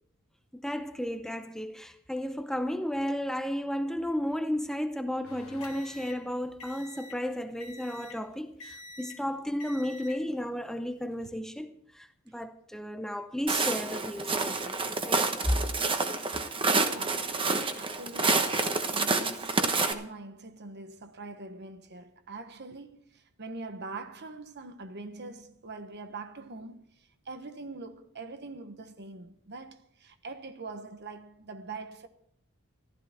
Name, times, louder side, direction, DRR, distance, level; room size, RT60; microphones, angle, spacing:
voice 1, 0.5-11.7 11.9-15.6, equal, ahead, 0.6 m, -33 dB
sound 1, 5.2-7.2 7.6-8.2 8.6-9.2 9.6-10.2 11.0-11.3, left 2 dB, 80° left, 1.6 m, -47 dB
Walk footsteps, 13.5-19.9, right 3 dB, 25° right, 1.1 m, -28 dB
voice 2, 16.7-17.4 17.8-32.1, right 3 dB, 50° right, 1.2 m, -43 dB
15.0 x 13.0 x 4.4 m
head